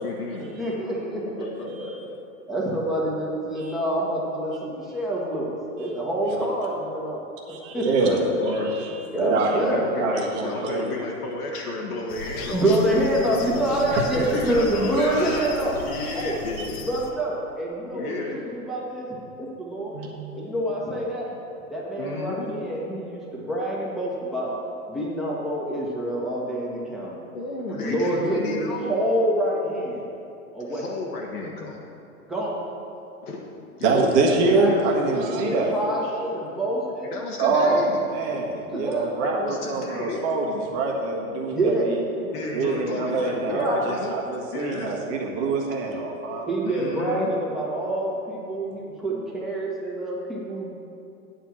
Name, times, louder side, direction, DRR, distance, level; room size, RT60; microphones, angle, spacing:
voice 1, 0.0-0.5 1.1-2.1 8.0-8.7 9.5-12.6 13.9-15.5 15.7-16.8 17.9-18.4 22.0-22.5 27.3-29.0 30.6-31.8 33.2-33.5 33.8-33.9 34.6-34.8 37.1-38.0 39.2-40.2 42.3-44.1 44.5-44.9 46.6-47.3, left 3 dB, 85° left, -2 dB, 1.5 m, -33 dB
voice 2, 0.6-1.2 2.5-5.5 5.8-7.2 7.7-7.9 9.1-9.8 12.5-15.8 16.1-16.4 16.9-20.0 20.3-21.3 21.7-23.2 23.5-24.5 24.9-27.1 27.7-28.6 28.9-30.0 30.5-30.8 32.3-32.6 33.9-37.1 38.3-38.4 38.7-39.0 41.5-41.9 43.5-43.8 46.5-50.7, right 1 dB, ahead, -6 dB, 1.5 m, -26 dB
voice 3, 7.5-10.9 13.2-13.4 16.6-16.7 19.9-20.1 33.8-35.9 37.4-42.0 42.5-46.5, right 3 dB, 35° right, 0 dB, 1.4 m, -25 dB
sound 1, 12.1-17.1, left 4 dB, 45° left, 0.9 m, -38 dB
9.0 x 4.6 x 7.6 m, 2.7 s
hypercardioid pair, 140°, 44 cm